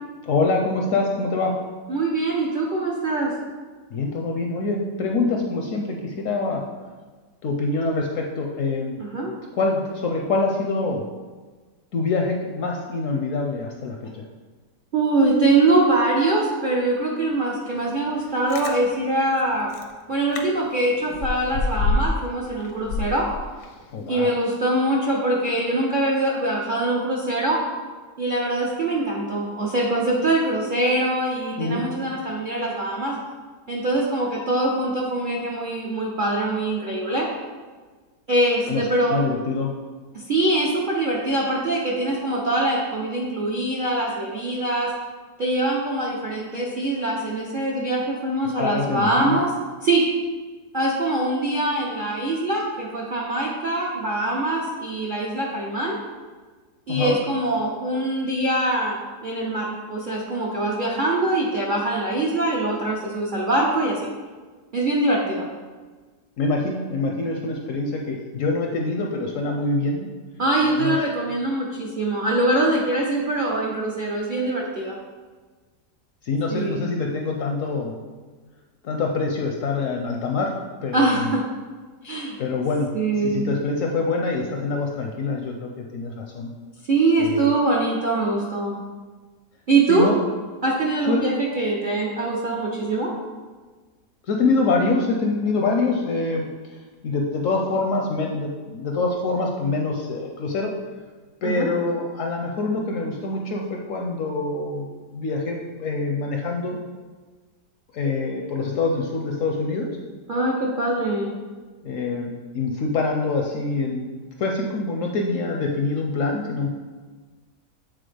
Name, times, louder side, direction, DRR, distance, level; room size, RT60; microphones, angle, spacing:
voice 1, 0.2-1.5 3.9-6.6 7.4-9.0 9.5-11.0 11.9-14.2 23.9-24.3 31.6-31.8 38.7-39.7 48.6-49.4 56.9-57.2 66.4-70.1 70.6-71.0 76.2-78.0 78.8-80.5 80.8-81.3 82.4-82.9 83.2-86.5 87.2-87.5 89.9-90.2 91.1-91.2 94.3-96.5 97.0-100.7 101.4-104.9 105.1-106.8 107.9-109.9 111.8-114.1 114.4-116.7, left 3 dB, 70° left, 1 dB, 0.8 m, -25 dB
voice 2, 1.9-3.3 9.0-9.3 14.9-19.7 20.1-23.3 24.1-27.6 28.2-33.1 33.7-37.3 38.3-39.2 40.1-44.9 45.4-49.5 49.8-50.0 50.7-56.0 56.9-59.0 59.2-64.0 64.7-65.5 70.4-75.0 76.5-76.8 80.9-81.4 82.0-82.4 82.9-83.4 86.9-88.8 89.7-90.1 90.6-93.1 101.4-101.7 110.3-111.3, right 2 dB, 60° right, -3 dB, 0.5 m, -23 dB
Chewing mastication, 18.3-18.8 19.4-19.5 19.7-19.9 20.3-20.4 20.8-22.3 22.6-23.8 24.2-24.3, left 3 dB, 85° left, 1.2 m, -26 dB
7.7 x 3.9 x 3.3 m, 1.4 s
omnidirectional pair, 1.8 m